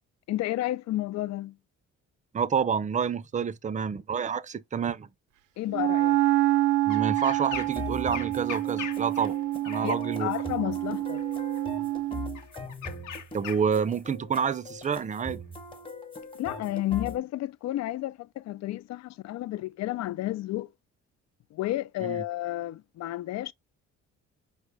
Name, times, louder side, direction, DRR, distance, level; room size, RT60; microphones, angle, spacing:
voice 1, 0.3-1.5 5.6-6.2 9.8-11.2 16.3-20.7 21.5-23.5, left 15 dB, 60° left, 0.4 m, -31 dB
voice 2, 2.3-5.1 6.9-9.4 9.6-10.3 13.3-15.4 22.0-22.2, right 7 dB, 25° right, 0.5 m, -28 dB
Wind instrument woodwind instrument, 5.7-12.4, right 15 dB, 90° right, 0.5 m, -27 dB
sound 1, 6.9-7.8 8.1-10.1 11.1-11.6 12.3-13.9 14.8-14.9, left 8 dB, 90° left, 1.1 m, -41 dB
sound 2, 7.5-17.2, left 2 dB, 15° left, 1.2 m, -41 dB
5.2 x 2.0 x 4.6 m
cardioid pair, 90°, 30 cm